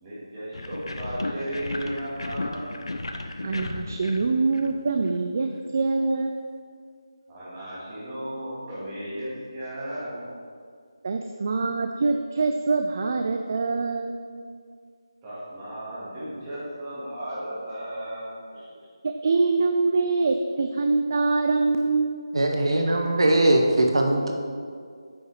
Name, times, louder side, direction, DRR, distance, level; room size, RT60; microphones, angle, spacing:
voice 1, 0.0-2.7 7.3-10.2 15.2-18.7, right 1 dB, 15° right, -10 dB, 2.1 m, -35 dB
sound 1, 0.5-5.2, left 2 dB, 75° left, 0.7 m, -34 dB
voice 2, 3.4-6.3 11.0-14.2 19.2-22.2, right 3 dB, 35° right, 5 dB, 0.4 m, -24 dB
voice 3, 22.3-24.3, right 1 dB, 70° right, 2 dB, 1.1 m, -20 dB
8.9 x 5.5 x 4.8 m, 2.1 s
figure-of-eight pair, 170°, 3 cm